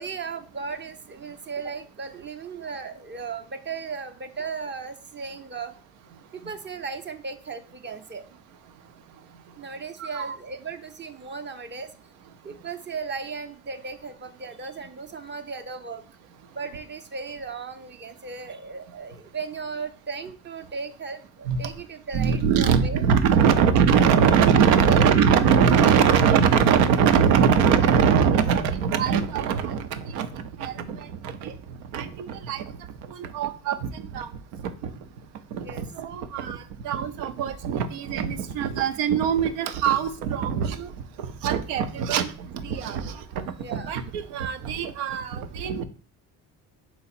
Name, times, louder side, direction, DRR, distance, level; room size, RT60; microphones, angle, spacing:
voice 1, 0.0-5.7 6.3-8.4 9.6-11.9 12.4-16.0 16.5-23.0 23.5-23.7 24.8-25.0 35.6-35.9 43.6-43.9, right 5 dB, 25° right, 7 dB, 0.5 m, -36 dB
voice 2, 10.0-10.4 21.5-21.6 22.1-31.5 31.9-32.6 33.1-34.3 34.6-34.9 35.5-36.6 36.8-40.9 41.2-43.4 43.7-45.8, right 7 dB, 90° right, 10 dB, 0.6 m, -22 dB
4.0 x 2.9 x 4.1 m, 0.39 s
supercardioid pair, 65°, 42 cm